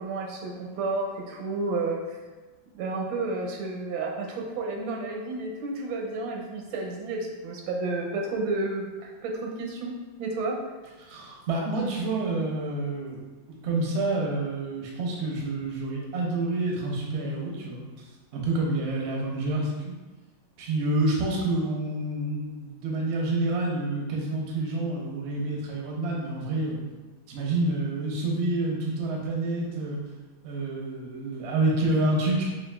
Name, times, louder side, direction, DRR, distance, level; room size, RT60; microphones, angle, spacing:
voice 1, 0.0-2.2 2.7-10.6, right 3 dB, 85° right, 1 dB, 1.3 m, -31 dB
voice 2, 11.0-13.2 13.6-17.8 18.3-19.9 20.6-26.8 27.3-30.0 30.4-32.4, right 2 dB, 70° right, -2 dB, 0.6 m, -28 dB
5.7 x 2.4 x 2.3 m, 1.2 s
omnidirectional pair, 2.1 m